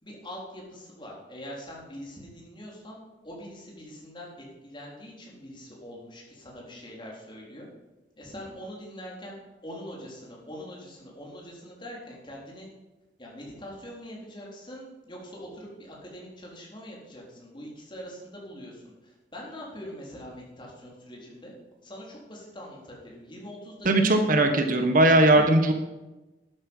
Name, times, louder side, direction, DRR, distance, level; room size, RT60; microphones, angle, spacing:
voice 1, 0.0-3.0 3.2-4.3 4.6-7.7 8.2-12.7 13.2-21.5 21.8-24.3 25.3-25.4, equal, 25° left, -3 dB, 4.0 m, -43 dB
voice 2, 23.8-25.7, right 2 dB, 50° right, 6 dB, 1.3 m, -19 dB
12.0 x 9.8 x 5.5 m, 1.1 s
head